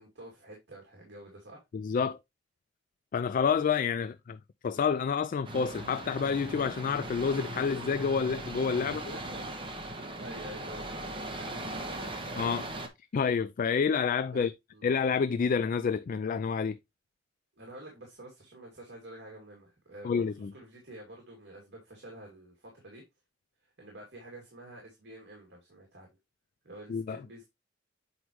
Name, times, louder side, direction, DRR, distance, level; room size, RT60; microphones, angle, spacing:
voice 1, 0.0-1.6 8.8-9.5 9.8-12.4 14.3-14.9 17.6-23.0 23.6-26.1 26.6-27.5, right 1 dB, 60° right, 2.3 m, -49 dB
voice 2, 1.7-2.2 3.1-4.4 4.6-9.0 12.4-12.6 13.1-14.5 14.8-16.8 20.0-20.5 26.9-27.2, left 6 dB, 45° left, 0.3 m, -28 dB
sound 1, 5.4-12.9, right 1 dB, 30° right, 1.2 m, -39 dB
8.0 x 4.8 x 3.0 m
head